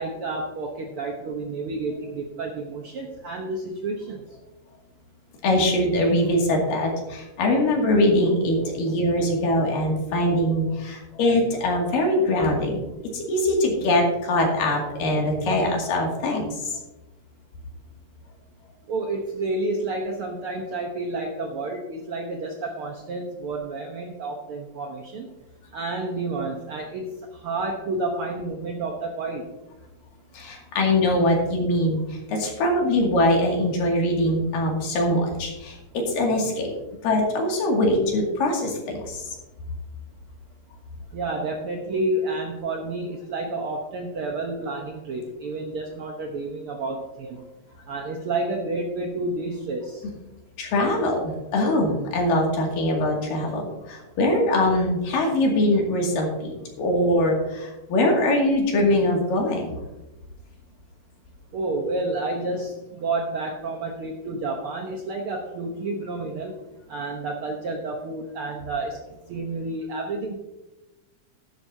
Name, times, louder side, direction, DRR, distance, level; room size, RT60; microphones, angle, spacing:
voice 1, 0.0-4.2 18.9-25.3 25.7-29.4 41.1-47.4 47.9-50.0 61.5-66.6 66.9-69.0 69.3-70.3, right 2 dB, 80° right, 1 dB, 1.2 m, -30 dB
voice 2, 5.4-12.8 13.1-16.8 30.3-36.7 37.0-39.2 50.6-59.8, left 1 dB, 75° left, 0 dB, 3.9 m, -22 dB
13.0 x 11.5 x 2.7 m, 1.0 s
omnidirectional pair, 3.9 m